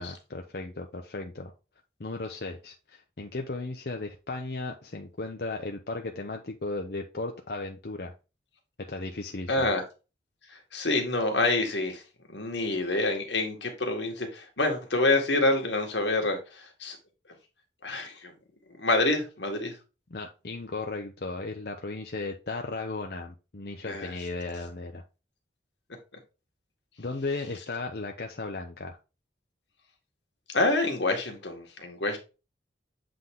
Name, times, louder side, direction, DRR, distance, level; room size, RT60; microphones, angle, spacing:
voice 1, 0.0-1.5 2.0-8.1 8.9-9.7 20.1-25.0 27.0-29.0, left 3 dB, 55° left, 0.7 m, -36 dB
voice 2, 9.5-9.8 10.5-12.0 12.3-17.0 17.8-18.3 18.8-19.7 23.8-24.1 30.5-32.2, left 2 dB, 85° left, 1.8 m, -27 dB
7.7 x 3.8 x 3.7 m
head